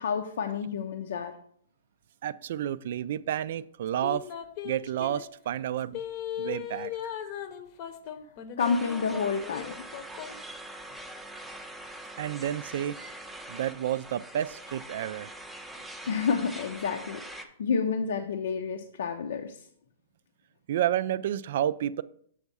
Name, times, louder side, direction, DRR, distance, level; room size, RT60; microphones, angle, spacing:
voice 1, 0.0-1.3 8.6-9.7 16.1-19.6, left 5 dB, 75° left, 4 dB, 0.6 m, -29 dB
voice 2, 2.2-4.3 4.6-6.0 6.4-7.1 12.2-13.0 13.5-15.3 20.7-22.0, right 11 dB, 60° right, 17 dB, 0.3 m, -30 dB
sound 1, 4.0-5.2 5.9-10.4 10.9-11.0, left 9 dB, 40° left, 0.8 m, -38 dB
sound 2, 8.6-17.5, right 1 dB, 5° right, 0.6 m, -43 dB
7.0 x 3.5 x 5.4 m, 0.63 s
hypercardioid pair, 145°, 0 cm